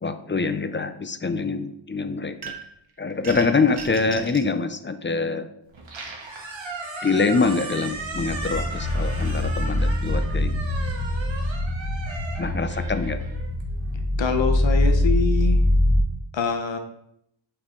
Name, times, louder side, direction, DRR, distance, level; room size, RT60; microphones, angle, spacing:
voice 1, 0.0-2.6 3.0-5.5 7.0-10.6 12.4-13.2, left 4 dB, 25° left, 10 dB, 0.5 m, -25 dB
sound 1, 2.4-2.8 3.2-4.5, right 6 dB, 55° right, 1.0 m, -37 dB
Squeak, 5.7-14.0, right 2 dB, 70° right, 1.6 m, -36 dB
sound 2, 7.9-16.0, left 1 dB, 40° right, 3.0 m, -23 dB
voice 2, 14.2-15.6 16.3-16.8, left 5 dB, 65° left, 6 dB, 0.9 m, -25 dB
8.6 x 4.7 x 3.8 m, 0.76 s
wide cardioid pair, 110°, 48 cm